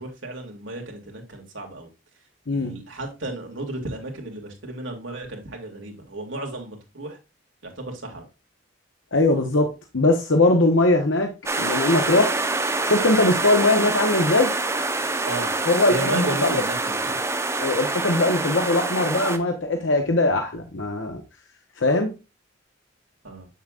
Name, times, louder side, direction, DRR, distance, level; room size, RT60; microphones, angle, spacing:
voice 1, 0.0-1.9 2.5-7.2 7.6-8.3 15.2-15.5 15.9-17.2 23.2-23.5, right 2 dB, 75° right, 2 dB, 2.3 m, -34 dB
voice 2, 9.1-11.3 11.6-12.3 12.8-14.5 15.7-16.5 17.6-21.2 21.8-22.1, left 2 dB, 75° left, 4 dB, 1.0 m, -21 dB
sound 1, 11.5-19.4, right 3 dB, 15° right, 0.7 m, -26 dB
7.5 x 7.1 x 2.4 m, 0.27 s
head